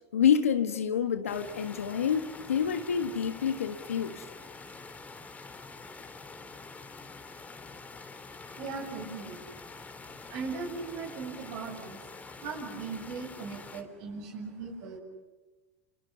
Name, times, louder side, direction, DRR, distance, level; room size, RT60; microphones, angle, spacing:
voice 1, 0.1-4.2, left 7 dB, 85° left, 1.6 m, -27 dB
sound 1, 1.3-13.8, left 4 dB, 20° left, 3.4 m, -46 dB
voice 2, 8.4-9.5 10.1-15.0, right 4 dB, 60° right, 7.7 m, -39 dB
29.5 x 28.5 x 6.7 m
hypercardioid pair, 85°, 7 cm